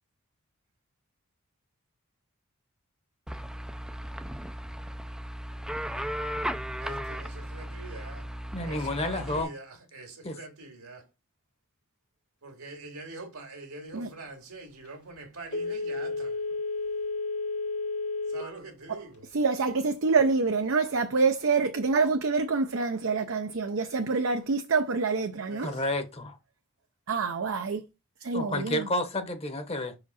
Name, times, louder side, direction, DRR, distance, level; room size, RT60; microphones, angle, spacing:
sound 1, 3.3-9.4, equal, 5° right, 0.4 m, -36 dB
voice 1, 7.8-8.2 8.6-8.8 9.1-9.6 9.9-11.0 12.4-16.3 18.3-19.1 25.5-25.7, right 3 dB, 80° right, 2.2 m, -43 dB
voice 2, 8.5-9.5 10.2-10.4 25.6-26.4 28.3-29.9, left 1 dB, 25° left, 1.0 m, -30 dB
Telephone, 15.5-18.6 19.0-19.1, left 3 dB, 80° left, 1.6 m, -32 dB
voice 3, 19.3-25.8 27.1-27.8 28.2-28.9, right 4 dB, 60° right, 0.6 m, -26 dB
5.7 x 4.9 x 4.2 m
head